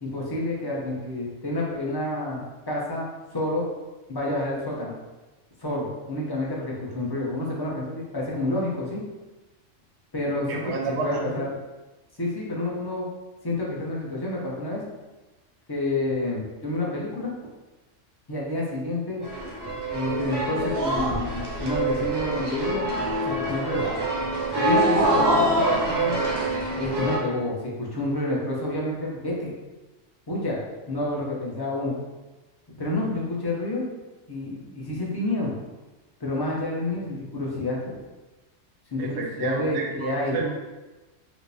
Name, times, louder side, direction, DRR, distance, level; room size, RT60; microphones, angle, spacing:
voice 1, 0.0-3.1 3.3-3.7 4.1-4.9 5.6-9.0 10.1-11.4 12.2-13.1 13.4-14.8 15.7-17.3 18.3-19.2 19.9-22.9 23.3-23.8 24.5-26.2 26.7-29.5 30.3-30.6 30.9-31.9 32.8-33.9 34.3-35.5 36.2-38.0 38.9-40.4, left 1 dB, 30° left, -4 dB, 0.5 m, -29 dB
voice 2, 10.5-11.4 39.0-40.5, right 4 dB, 70° right, 1 dB, 0.8 m, -31 dB
sound 1, 19.2-27.2, right 1 dB, 30° right, 0.5 m, -25 dB
4.5 x 2.0 x 2.6 m, 1.1 s
omnidirectional pair, 1.3 m